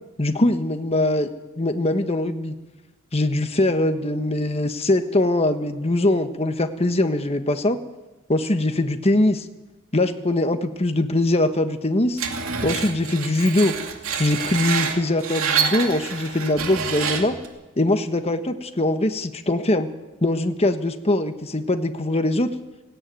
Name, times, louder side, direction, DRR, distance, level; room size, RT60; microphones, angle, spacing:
voice 1, 0.2-1.3 1.6-2.5 3.1-7.8 8.3-9.5 9.9-12.2 12.6-13.7 14.2-17.4 17.8-19.9 20.2-22.5, left 1 dB, 30° left, 7 dB, 1.3 m, -22 dB
Screech, 12.2-17.5, right 6 dB, 80° right, 2.6 m, -27 dB
17.5 x 17.5 x 9.2 m, 1.1 s
head